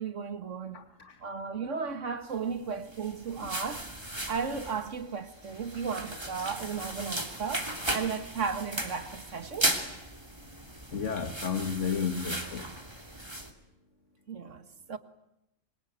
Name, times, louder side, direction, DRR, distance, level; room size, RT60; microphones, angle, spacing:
voice 1, 0.0-0.9 1.2-3.9 4.3-9.7 14.3-15.0, right 6 dB, 70° right, 2.0 m, -35 dB
voice 2, 0.7-1.2 3.4-3.5 10.9-12.6, left 6 dB, 65° left, 2.1 m, -32 dB
sound 1, 2.8-13.5, right 1 dB, 20° right, 2.9 m, -36 dB
27.0 x 24.0 x 9.2 m
omnidirectional pair, 1.3 m